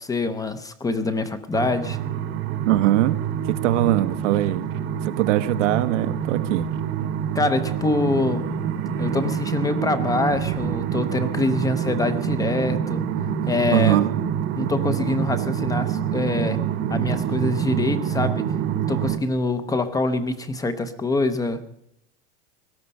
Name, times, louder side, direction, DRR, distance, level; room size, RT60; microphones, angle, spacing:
voice 1, 0.0-2.0 7.3-8.5 9.0-13.0 13.5-14.0 14.6-16.6 16.9-18.5 18.9-21.6, left 2 dB, 10° left, 11 dB, 0.6 m, -25 dB
sound 1, 1.5-19.2, right 8 dB, 35° right, 1.0 m, -26 dB
voice 2, 2.6-3.2 3.5-4.6 5.0-6.7 13.7-14.1, right 14 dB, 85° right, 11 dB, 1.1 m, -21 dB
18.5 x 12.5 x 5.3 m, 0.77 s
supercardioid pair, 160°, 35 cm